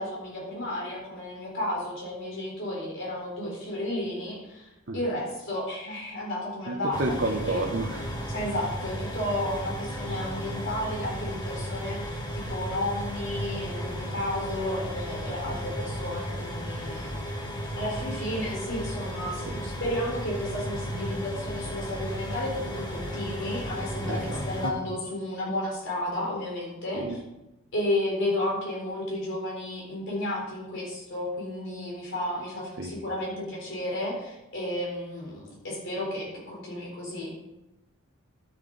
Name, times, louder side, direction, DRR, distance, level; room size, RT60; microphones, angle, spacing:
voice 1, 0.0-7.6 8.3-17.3 17.8-27.2 27.7-37.3, left 1 dB, 60° left, -3 dB, 4.0 m, -32 dB
voice 2, 6.7-8.2 19.5-19.6 24.1-24.7 26.9-27.2 32.8-33.0, right 2 dB, 50° right, 1 dB, 0.9 m, -31 dB
sound 1, 6.9-24.7, equal, 20° left, 1.2 m, -34 dB
12.0 x 7.4 x 3.9 m, 0.95 s
head